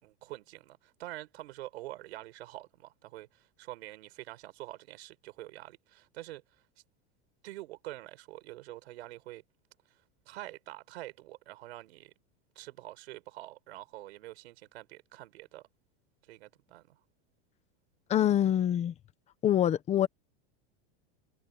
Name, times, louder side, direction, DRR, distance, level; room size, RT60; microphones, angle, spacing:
voice 1, 0.0-6.7 7.4-9.4 9.8-12.1 12.5-15.6 16.2-17.0, right 16 dB, 85° right, 4.6 m, -46 dB
voice 2, 18.1-18.9 19.4-20.1, left 11 dB, 20° left, 1.2 m, -25 dB
supercardioid pair, 170°, 32 cm